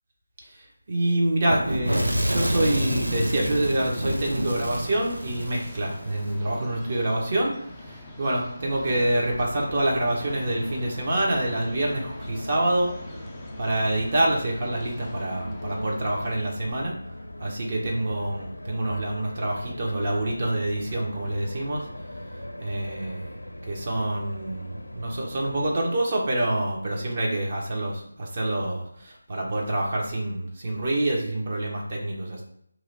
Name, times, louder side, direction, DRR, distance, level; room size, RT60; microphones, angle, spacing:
voice 1, 0.9-7.5 7.8-12.9 13.6-16.9 17.4-21.9 22.6-23.3 23.6-32.4, right 1 dB, 35° right, -1 dB, 0.8 m, -26 dB
Fire / Explosion, 1.5-6.3, equal, 75° right, 0.8 m, -28 dB
sound 1, 2.3-16.3, left 1 dB, 5° left, 0.4 m, -44 dB
sound 2, 8.6-25.7, left 1 dB, 70° left, 0.5 m, -39 dB
3.1 x 2.8 x 3.9 m, 0.72 s
figure-of-eight pair, 160°, 0 cm